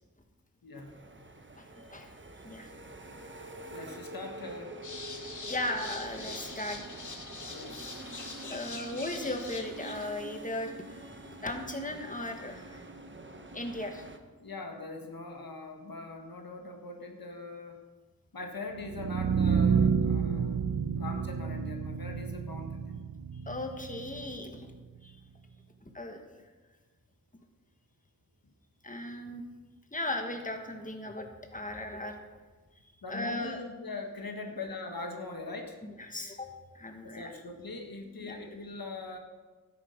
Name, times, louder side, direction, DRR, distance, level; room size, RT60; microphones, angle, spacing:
voice 1, 0.6-1.1 3.7-4.7 7.5-8.0 14.4-17.8 18.3-22.9 33.0-35.8 37.0-39.2, left 3 dB, 80° left, 3 dB, 1.6 m, -42 dB
sound 1, 0.7-14.2, right 2 dB, 35° right, 1.1 m, -46 dB
voice 2, 1.6-2.1 2.4-2.7 5.5-6.8 8.4-12.8 13.5-14.0 23.5-24.7 25.0-25.1 25.9-26.2 28.8-29.4 29.9-32.4 33.1-33.6 35.8-36.5 36.7-37.3 38.2-38.4, left 1 dB, 20° left, 4 dB, 1.6 m, -37 dB
sound 2, 4.8-10.1, left 3 dB, 60° left, 1.4 m, -43 dB
sound 3, 18.8-24.8, right 6 dB, 70° right, 0.7 m, -30 dB
12.5 x 10.5 x 5.2 m, 1.3 s
wide cardioid pair, 60°, 35 cm